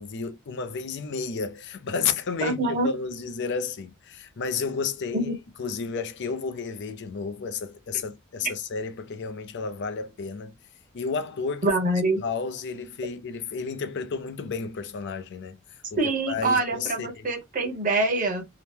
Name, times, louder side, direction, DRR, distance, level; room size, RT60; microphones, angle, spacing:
voice 1, 0.0-5.3 5.6-10.6 10.9-11.7 12.0-15.6 15.9-16.0 16.3-17.3, left 5 dB, 50° left, 0.4 m, -32 dB
voice 2, 2.4-2.9 5.1-5.4 11.6-12.2 16.0-18.4, right 2 dB, 35° right, 0.9 m, -25 dB
2.9 x 2.0 x 3.3 m
head